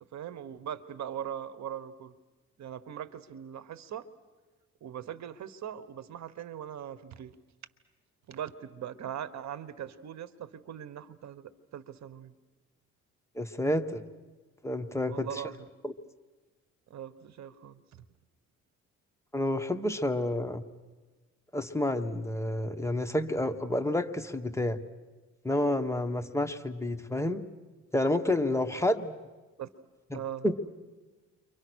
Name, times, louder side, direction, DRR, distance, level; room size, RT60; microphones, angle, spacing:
voice 1, 0.1-2.1 2.6-4.1 4.8-7.3 8.3-12.3 15.1-15.6 16.9-17.8 29.6-29.7 30.1-30.4, right 10 dB, 65° right, 15 dB, 1.3 m, -40 dB
voice 2, 13.3-14.0 14.6-15.4 15.8-15.9 19.3-20.6 21.5-24.8 25.4-27.4 27.9-29.2 30.1-30.6, left 1 dB, 10° left, 7 dB, 1.4 m, -29 dB
30.0 x 24.0 x 6.3 m, 1.3 s
cardioid pair, 90°, 30 cm